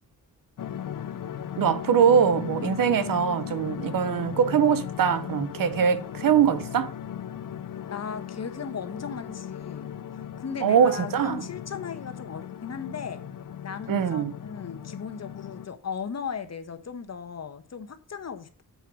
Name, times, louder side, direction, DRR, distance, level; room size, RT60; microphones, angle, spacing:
sound 1, 0.6-15.7, left 9 dB, 70° left, 0.7 m, -37 dB
voice 1, 1.6-6.9 10.6-11.4 13.9-14.3, right 7 dB, 80° right, 0.9 m, -22 dB
voice 2, 7.9-9.9 10.4-13.3 13.6-18.6, left 6 dB, 50° left, 1.1 m, -36 dB
8.0 x 4.6 x 6.1 m
cardioid pair, 80°, 33 cm